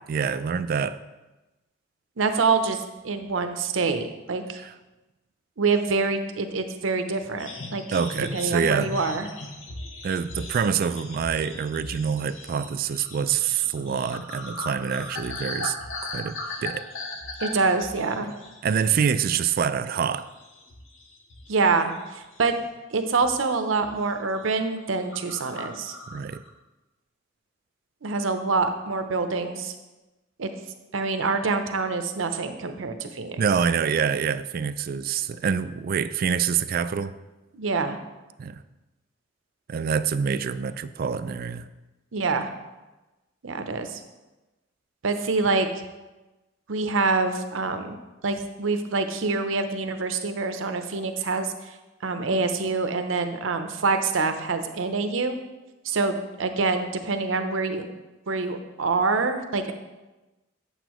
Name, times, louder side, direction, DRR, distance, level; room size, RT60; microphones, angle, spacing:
voice 1, 0.1-1.0 4.5-4.7 7.9-9.0 10.0-15.8 16.0-16.8 18.6-20.3 26.1-26.4 33.4-37.2 38.4-38.6 39.7-41.7, right 7 dB, 50° right, 13 dB, 0.3 m, -26 dB
voice 2, 2.2-2.8 3.0-4.6 5.6-7.8 8.3-9.3 17.4-18.3 21.5-21.9 22.4-22.6 22.9-25.9 28.0-29.7 30.4-30.5 30.9-33.4 37.5-38.0 42.1-42.5 43.4-44.0 45.0-45.7 46.7-51.5 52.0-55.4 55.8-57.9 58.3-59.7, right 4 dB, 80° right, 7 dB, 0.7 m, -26 dB
sound 1, 7.4-19.1 19.4-19.7 20.1-21.6 21.9-22.7 23.2-23.4 23.7-24.1 24.4-24.5 24.8-24.9 25.1-26.5, left 2 dB, 90° left, 1.0 m, -38 dB
8.2 x 7.7 x 3.0 m, 1.1 s
head